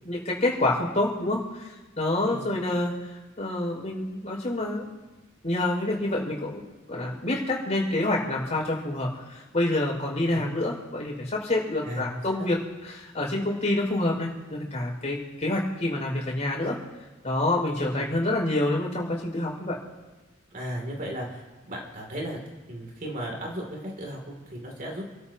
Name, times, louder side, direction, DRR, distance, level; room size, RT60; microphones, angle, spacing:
voice 1, 0.0-3.1 3.4-4.9 5.4-6.6 6.9-16.8 17.2-19.8, left 1 dB, 35° left, -3 dB, 5.9 m, -27 dB
voice 2, 20.5-22.4 22.7-25.1, equal, 45° right, 0 dB, 3.0 m, -36 dB
29.5 x 13.5 x 3.0 m, 1.2 s
head